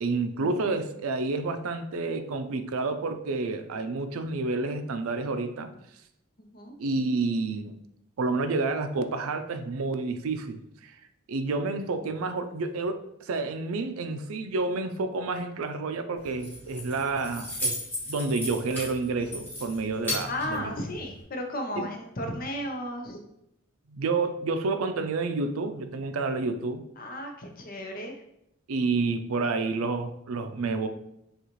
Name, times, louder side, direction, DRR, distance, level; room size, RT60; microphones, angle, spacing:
voice 1, 0.0-5.7 6.8-7.8 8.2-10.9 11.3-17.8 18.1-20.7 21.8-21.9 23.9-26.8 28.7-30.9, right 3 dB, 80° right, 8 dB, 0.4 m, -29 dB
Keys jangling, 16.2-21.2, left 1 dB, 10° left, 1.2 m, -36 dB
voice 2, 20.3-23.2 27.0-28.1, left 1 dB, 40° left, 3 dB, 0.7 m, -34 dB
6.4 x 2.4 x 3.0 m, 0.80 s
head